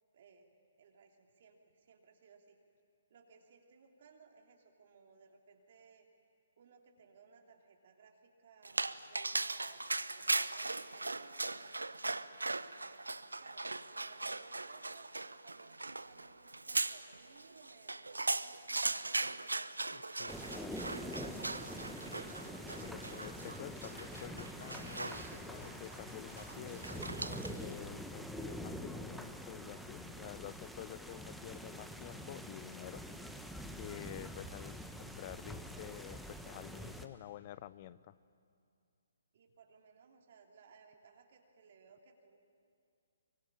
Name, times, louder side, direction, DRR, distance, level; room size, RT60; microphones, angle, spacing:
voice 1, 0.1-0.5 0.8-2.6 3.1-6.1 6.6-12.9 13.4-19.6 20.3-21.9 34.0-34.2 39.3-42.4, right 5 dB, 50° right, 2 dB, 3.2 m, -62 dB
Dog, 8.6-27.7, right 2 dB, 85° right, 0.8 m, -39 dB
voice 2, 19.9-20.8 22.7-33.1 33.8-38.1, left 13 dB, 40° left, 17 dB, 0.7 m, -49 dB
sound 1, 20.3-37.0, equal, ahead, 1.2 m, -45 dB
24.0 x 23.5 x 10.0 m, 2.4 s
figure-of-eight pair, 135°, 0 cm